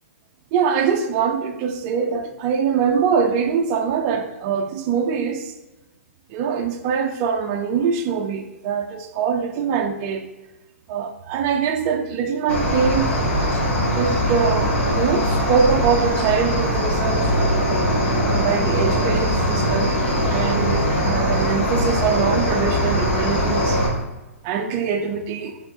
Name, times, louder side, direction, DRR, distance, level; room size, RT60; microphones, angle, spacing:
voice 1, 0.5-5.5 6.3-10.3 10.9-13.1 14.0-17.5 18.2-20.0 20.3-23.8 24.4-25.6, right 6 dB, 35° right, 0.4 m, -23 dB
Cricket, 12.5-23.9, equal, 55° left, 1.4 m, -21 dB
4.3 x 3.1 x 2.8 m
hypercardioid pair, 135°, 8 cm